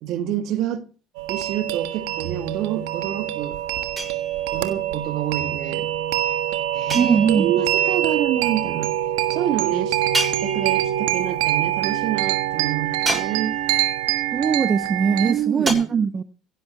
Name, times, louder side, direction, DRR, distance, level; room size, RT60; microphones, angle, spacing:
voice 1, 0.0-0.9 1.3-3.6 4.5-5.9 6.7-8.9 9.3-13.6 15.2-15.8, right 11 dB, 65° right, 1.8 m, -27 dB
sound 1, 1.2-15.3, right 12 dB, 85° right, 1.5 m, -25 dB
sound 2, 4.0-4.7 6.9-7.7 10.1-11.1 13.0-13.8 15.7-15.8, right 2 dB, 20° right, 6.9 m, -29 dB
voice 2, 6.9-7.5 14.3-16.2, right 6 dB, 40° right, 0.9 m, -20 dB
16.5 x 7.9 x 7.4 m
supercardioid pair, 85°, 0 cm